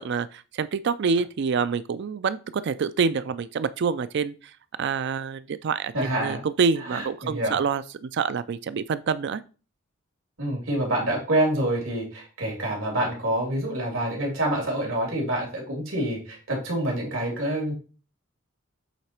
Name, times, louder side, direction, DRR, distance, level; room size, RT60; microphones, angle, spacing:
voice 1, 0.0-4.5 4.8-5.9 6.2-9.4, right 5 dB, 60° right, 0.4 m, -26 dB
voice 2, 5.9-6.4 6.9-7.6 10.4-17.8, right 1 dB, 80° right, 3.0 m, -27 dB
8.2 x 4.0 x 4.4 m
head